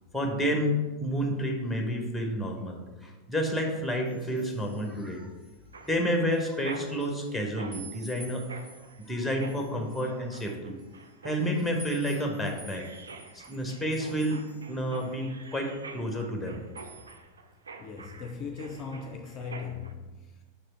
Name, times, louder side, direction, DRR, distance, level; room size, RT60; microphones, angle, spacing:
voice 1, 0.1-5.3 5.8-8.4 9.1-10.8 11.2-12.9 13.3-16.6, equal, ahead, 1.1 m, -30 dB
sound 1, 4.0-6.0 6.3-7.3 7.7-15.1 15.4-16.4 16.8-17.1, right 1 dB, 40° right, 1.8 m, -52 dB
Mechanisms, 5.7-19.9, right 4 dB, 70° right, 0.5 m, -47 dB
voice 2, 17.8-20.4, left 5 dB, 30° left, 0.4 m, -39 dB
5.5 x 4.8 x 4.4 m
figure-of-eight pair, 90°, 0 cm